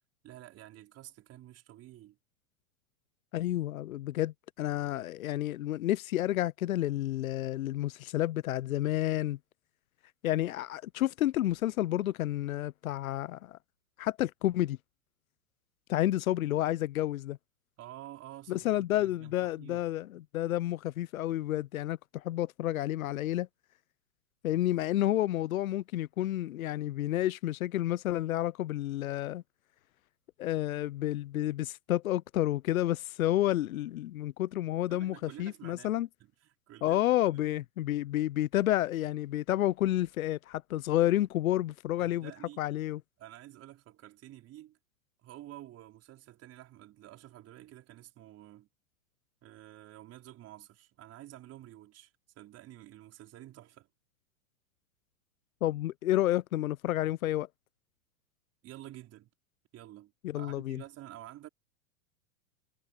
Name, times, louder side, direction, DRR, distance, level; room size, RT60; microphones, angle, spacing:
voice 1, 0.2-2.2 17.8-19.8 34.9-35.9 36.2-37.4 42.0-42.6 43.2-44.8 45.2-48.7 49.4-53.9 58.6-59.3 59.7-61.5, right 14 dB, 35° right, 4.8 m, -50 dB
voice 2, 3.3-9.4 10.2-13.6 14.0-14.8 15.9-17.4 18.5-23.5 24.4-29.4 30.4-36.1 36.8-42.3 42.6-43.0 55.6-57.5 60.2-60.8, left 14 dB, 85° left, 0.6 m, -30 dB
hypercardioid pair, 110°, 41 cm